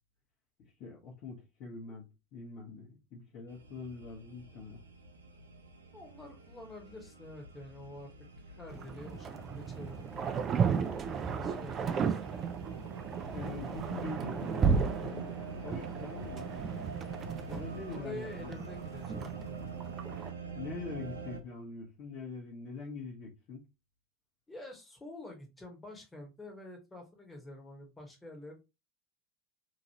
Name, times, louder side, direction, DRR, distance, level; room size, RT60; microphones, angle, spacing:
voice 1, 0.6-2.1 2.3-4.8 13.3-15.3 15.6-16.5 17.5-18.5 20.5-23.6, left 3 dB, 50° left, 1.1 m, -43 dB
sound 1, 3.5-21.4, right 4 dB, 90° right, 0.5 m, -46 dB
voice 2, 5.9-8.1 8.5-10.0 10.6-11.1 11.4-12.3 17.9-19.6 24.5-28.6, left 1 dB, 15° left, 1.2 m, -47 dB
sound 2, 8.7-20.3, right 6 dB, 35° right, 0.3 m, -34 dB
3.0 x 2.5 x 2.8 m
hypercardioid pair, 85°, 0 cm